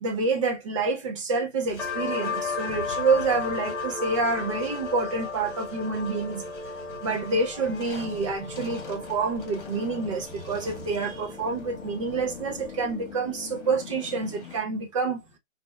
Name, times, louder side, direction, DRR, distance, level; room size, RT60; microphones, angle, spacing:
voice 1, 0.0-6.7 7.0-15.2, right 3 dB, 25° right, 0.8 m, -28 dB
sound 1, 1.7-14.6, left 6 dB, 45° left, 1.7 m, -44 dB
sound 2, 1.8-13.1, left 4 dB, 5° left, 0.6 m, -35 dB
6.0 x 2.8 x 2.3 m
figure-of-eight pair, 135°, 37 cm